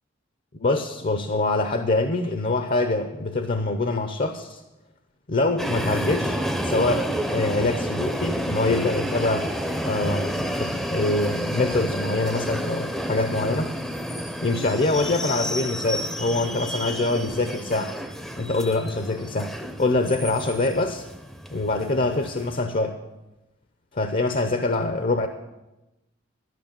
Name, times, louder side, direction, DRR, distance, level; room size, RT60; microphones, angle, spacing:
voice 1, 0.5-4.6 5.3-6.4 6.6-9.5 9.8-13.7 14.4-17.9 18.4-21.0 21.5-23.0 24.0-25.3, left 2 dB, 45° left, 8 dB, 0.7 m, -24 dB
sound 1, 5.6-22.6, equal, ahead, 0.7 m, -30 dB
12.0 x 6.1 x 8.8 m, 0.99 s
head